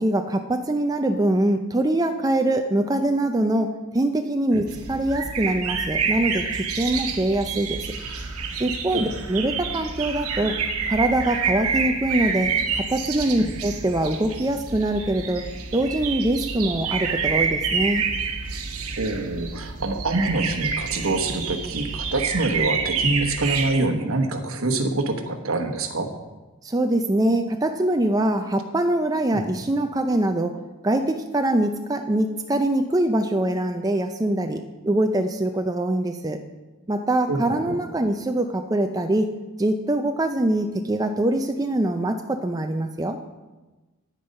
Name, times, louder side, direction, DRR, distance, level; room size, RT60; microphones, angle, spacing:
voice 1, 0.0-7.9 8.6-10.6 10.9-15.4 15.7-18.0 26.6-36.4 36.9-39.3 39.6-43.2, right 1 dB, 15° right, 5 dB, 0.4 m, -23 dB
sound 1, 4.7-23.7, right 5 dB, 90° right, 1.1 m, -28 dB
voice 2, 19.0-26.1 29.3-29.5 37.3-37.8, right 2 dB, 70° right, 6 dB, 1.2 m, -25 dB
9.6 x 9.1 x 5.3 m, 1.2 s
head